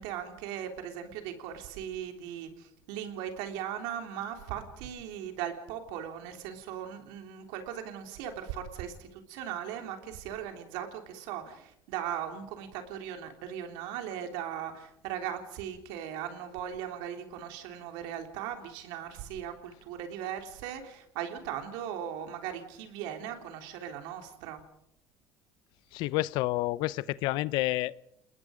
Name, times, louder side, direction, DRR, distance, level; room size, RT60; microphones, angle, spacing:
voice 1, 0.0-24.6, right 9 dB, 85° right, 5 dB, 3.5 m, -38 dB
voice 2, 25.9-28.0, left 18 dB, 70° left, 19 dB, 0.7 m, -29 dB
29.0 x 20.0 x 5.2 m, 0.76 s
cardioid pair, 120°, 8 cm